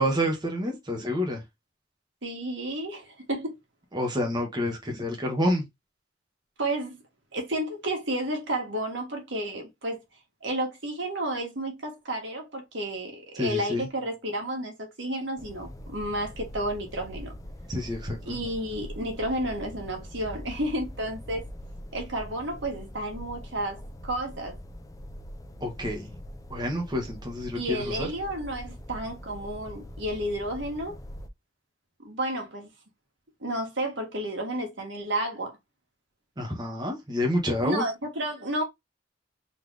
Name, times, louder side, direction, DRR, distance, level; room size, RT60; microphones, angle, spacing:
voice 1, 0.0-1.4 3.9-5.7 13.4-13.9 17.7-18.4 25.6-26.1 26.5-28.1 36.4-37.8, equal, 20° right, 1.5 m, -28 dB
voice 2, 2.2-3.6 6.6-7.0 7.3-10.0 10.4-17.3 18.2-21.4 21.9-23.8 24.0-24.6 27.5-31.0 32.0-32.7 33.4-35.6 37.6-38.6, right 1 dB, 70° right, 1.9 m, -31 dB
sound 1, 15.4-31.3, equal, 20° left, 0.5 m, -42 dB
4.2 x 3.4 x 3.4 m
head